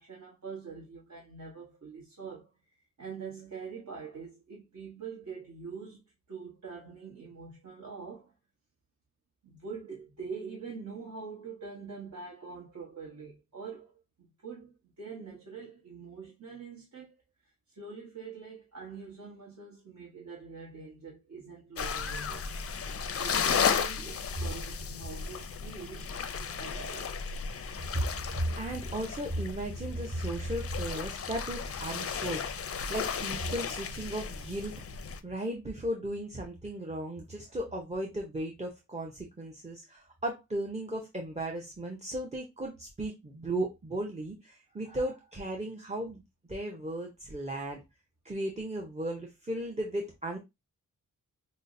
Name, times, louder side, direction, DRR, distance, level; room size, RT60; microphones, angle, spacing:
voice 1, 0.0-6.0 6.3-8.3 9.4-17.1 17.7-22.6 22.9-26.1 26.6-27.2, right 5 dB, 55° right, 1.1 m, -44 dB
sound 1, 21.8-35.2, left 6 dB, 45° left, 0.4 m, -34 dB
voice 2, 28.4-32.5 32.9-34.8 35.2-46.2 46.5-47.8 48.2-50.4, right 1 dB, 20° right, 0.7 m, -35 dB
5.5 x 2.1 x 2.6 m
wide cardioid pair, 95°, 34 cm